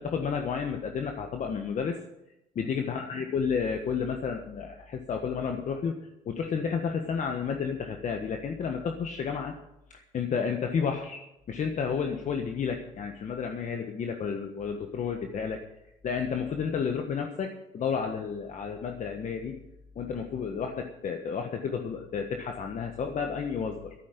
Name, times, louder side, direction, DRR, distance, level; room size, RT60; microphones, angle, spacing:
voice 1, 0.0-2.0 2.5-6.0 6.2-9.6 9.9-11.2 11.5-15.6 16.0-19.6 19.9-23.9, left 6 dB, 45° left, 4 dB, 1.4 m, -31 dB
13.0 x 10.0 x 6.7 m, 0.87 s
cardioid pair, 110°, 17 cm